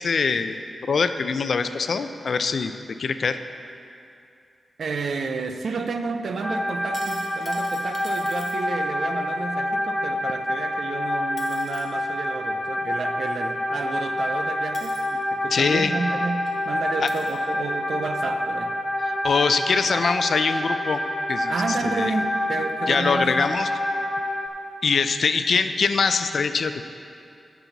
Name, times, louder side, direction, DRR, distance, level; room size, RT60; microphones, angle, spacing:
voice 1, 0.0-2.7 3.0-3.4 15.5-15.9 17.0-17.1 19.1-21.0 21.3-21.5 21.8-22.1 22.9-23.7 24.8-26.9, left 5 dB, 60° left, 10 dB, 0.4 m, -23 dB
voice 2, 4.8-18.8 21.5-23.5, right 4 dB, 65° right, 8 dB, 0.5 m, -31 dB
sound 1, 6.4-24.5, left 1 dB, 15° left, 0.7 m, -27 dB
sound 2, 6.7-8.6 10.8-10.9 11.4-11.8 13.7-13.8 14.7-15.0 16.0-16.1 16.4-16.5 17.1-17.4 18.2-18.3, right 2 dB, 40° right, 1.4 m, -44 dB
15.0 x 6.1 x 4.0 m, 2.6 s
wide cardioid pair, 110°, 0 cm